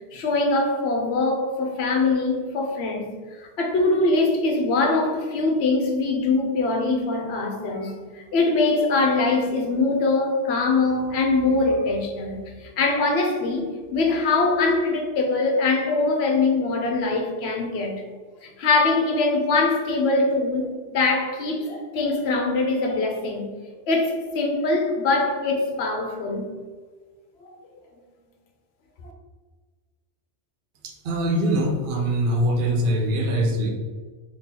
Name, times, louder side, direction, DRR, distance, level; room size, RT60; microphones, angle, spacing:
voice 1, 0.1-3.1 3.4-18.0 18.4-23.5 23.9-26.5 27.4-27.5 29.0-29.1, left 3 dB, 65° left, 0.9 m, -23 dB
voice 2, 30.8-33.7, right 1 dB, 55° right, 0.6 m, -23 dB
3.7 x 2.9 x 2.8 m
omnidirectional pair, 1.2 m